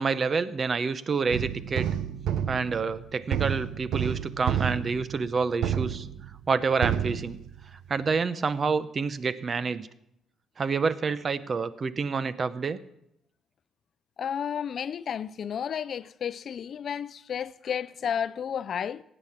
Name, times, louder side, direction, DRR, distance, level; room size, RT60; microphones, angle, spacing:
voice 1, 0.0-1.9 2.5-6.1 6.5-7.4 7.9-9.9 10.6-12.8, right 5 dB, 40° right, 0.7 m, -28 dB
sound 1, 1.3-6.6 6.8-7.9, right 9 dB, 80° right, 0.7 m, -30 dB
voice 2, 14.2-19.0, left 8 dB, 55° left, 0.5 m, -32 dB
16.5 x 8.9 x 5.9 m
cardioid pair, 90°, 0 cm